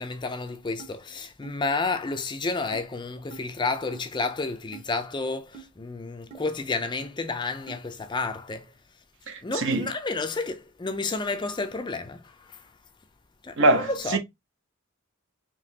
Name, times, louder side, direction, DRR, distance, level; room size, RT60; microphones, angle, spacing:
voice 1, 0.0-8.7 9.4-12.6 13.4-14.2, left 3 dB, 20° left, 0.4 m, -31 dB
sound 1, 0.8-0.9 1.4-1.6 2.1-2.2 2.7-2.9 3.3-3.4 3.9-4.0 4.7-4.9 5.5-5.7 6.3-6.4 7.0-7.1 7.7-7.8, right 6 dB, 30° right, 1.0 m, -44 dB
voice 2, 9.3-9.9 13.6-14.2, right 2 dB, 60° right, 0.9 m, -23 dB
5.1 x 2.9 x 2.8 m
head